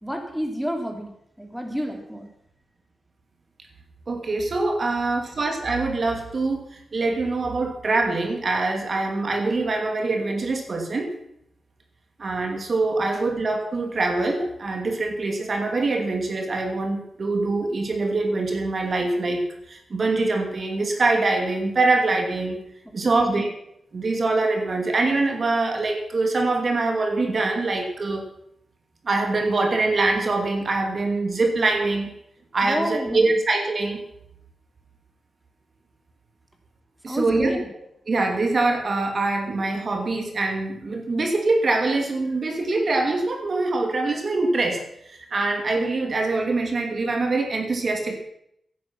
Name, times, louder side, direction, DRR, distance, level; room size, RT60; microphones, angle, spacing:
voice 1, 0.0-1.1 1.4-2.3 4.9-5.3 13.2-13.3 23.0-23.4 32.6-33.4 37.1-37.7, equal, ahead, 3 dB, 3.1 m, -30 dB
voice 2, 4.1-11.1 12.2-19.4 19.7-22.6 22.9-23.5 23.9-28.2 29.0-32.1 32.5-34.0 37.0-37.5 38.1-48.2, right 3 dB, 50° right, 3 dB, 2.7 m, -24 dB
14.5 x 11.5 x 6.0 m, 0.75 s
cardioid pair, 70°, 0 cm